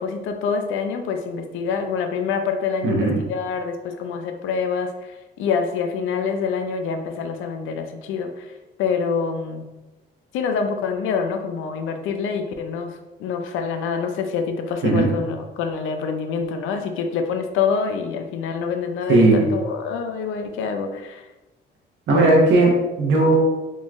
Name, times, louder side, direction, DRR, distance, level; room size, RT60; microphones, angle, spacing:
voice 1, 0.0-8.5 8.8-9.6 10.3-21.2, left 5 dB, 85° left, 6 dB, 0.5 m, -26 dB
voice 2, 2.8-3.2 14.8-15.1 19.1-19.5 22.1-23.4, right 2 dB, 75° right, -2 dB, 1.2 m, -17 dB
3.7 x 3.1 x 2.5 m, 1.1 s
cardioid pair, 90°, 20 cm